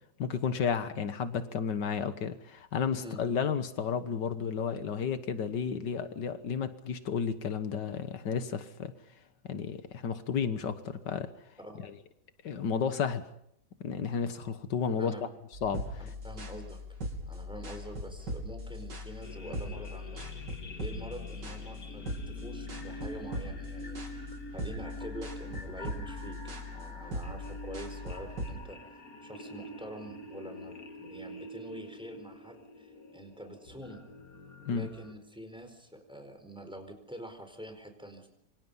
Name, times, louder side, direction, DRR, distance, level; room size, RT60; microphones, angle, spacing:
voice 1, 0.2-8.9 9.4-11.3 12.4-13.2 13.8-15.1 15.6-16.0 34.7-34.9, left 6 dB, 85° left, 10 dB, 2.0 m, -32 dB
sound 1, 15.5-28.5, left 1 dB, 85° right, 4.2 m, -40 dB
voice 2, 16.0-16.8 17.3-20.2 20.8-26.4 26.7-28.8 29.2-34.0 34.7-38.3, equal, 5° right, 6 dB, 4.6 m, -46 dB
sound 2, 19.2-35.1, left 1 dB, 55° left, 2.7 m, -46 dB
27.0 x 25.0 x 5.6 m, 0.74 s
omnidirectional pair, 1.8 m